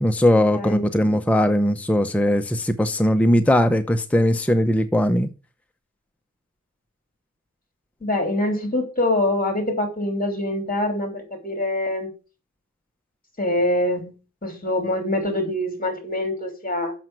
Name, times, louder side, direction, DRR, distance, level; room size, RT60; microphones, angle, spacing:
voice 1, 0.0-5.3, left 1 dB, 5° left, 0.8 m, -19 dB
voice 2, 0.5-0.8 8.0-12.1 13.4-14.1 14.4-16.9, left 1 dB, 25° left, 3.3 m, -24 dB
7.5 x 5.7 x 7.7 m
wide cardioid pair, 85°, 31 cm